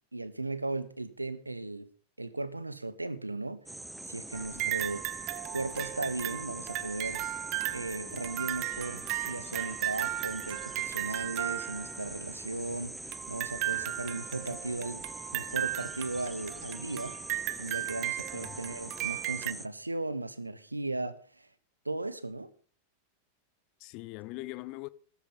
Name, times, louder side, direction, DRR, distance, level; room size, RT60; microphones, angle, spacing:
voice 1, 0.1-1.9 2.2-5.0 5.5-7.2 7.7-15.0 15.3-17.2 17.6-21.5 21.8-22.5, right 2 dB, 85° right, 1.2 m, -37 dB
sound 1, 3.7-19.7, right 1 dB, 5° right, 0.6 m, -43 dB
sound 2, 4.3-12.2 13.1-19.5, right 19 dB, 45° right, 0.7 m, -36 dB
voice 2, 4.5-4.9 18.3-18.6 23.8-24.9, left 21 dB, 45° left, 0.8 m, -42 dB
13.5 x 12.5 x 5.6 m
figure-of-eight pair, 90°, 0 cm